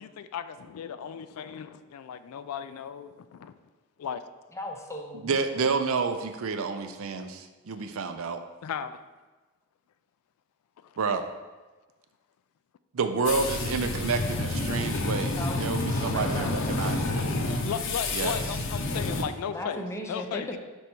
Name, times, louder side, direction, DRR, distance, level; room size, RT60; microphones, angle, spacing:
voice 1, 0.0-3.5 4.0-4.2 7.8-7.9 8.6-9.0 10.8-11.0 17.6-19.8 20.1-20.5, left 7 dB, 80° left, 11 dB, 0.3 m, -36 dB
voice 2, 4.5-5.4 15.4-17.1 19.5-20.6, left 1 dB, 15° left, 2 dB, 0.6 m, -38 dB
voice 3, 5.2-8.4 11.0-11.2 12.9-17.3 18.1-18.4, right 4 dB, 65° right, 8 dB, 0.5 m, -29 dB
sound 1, 13.2-19.2, left 2 dB, 60° left, 0.7 m, -29 dB
5.3 x 4.7 x 4.4 m, 1.2 s
head